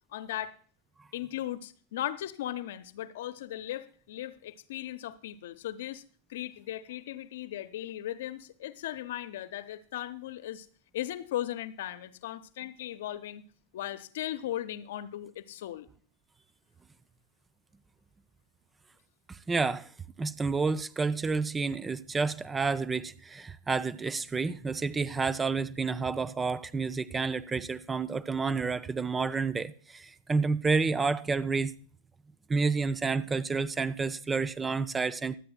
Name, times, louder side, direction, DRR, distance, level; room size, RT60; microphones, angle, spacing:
voice 1, 0.1-0.5 1.1-6.0 6.3-10.7 10.9-13.4 13.7-15.9, left 12 dB, 55° left, 0.8 m, -37 dB
voice 2, 19.3-19.9 20.2-31.7 32.5-35.4, right 4 dB, 15° right, 0.4 m, -30 dB
23.5 x 8.6 x 2.3 m
figure-of-eight pair, 90°, 0 cm